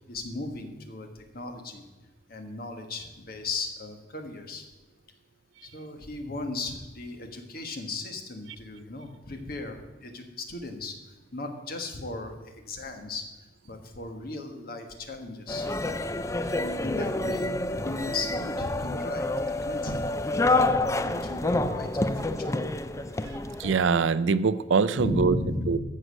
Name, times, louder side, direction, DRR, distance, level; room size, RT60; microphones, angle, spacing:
voice 1, 0.0-1.8 2.3-4.7 5.6-11.0 11.3-13.3 13.6-15.8 16.5-19.4 19.6-20.1 20.3-22.5 24.9-25.8, left 2 dB, 50° left, 5 dB, 1.5 m, -36 dB
sound 1, 15.5-23.8, left 2 dB, 15° left, 0.4 m, -28 dB
voice 2, 23.6-25.4 25.7-25.8, right 5 dB, 80° right, 15 dB, 0.5 m, -23 dB
14.0 x 6.5 x 6.4 m, 1.2 s
head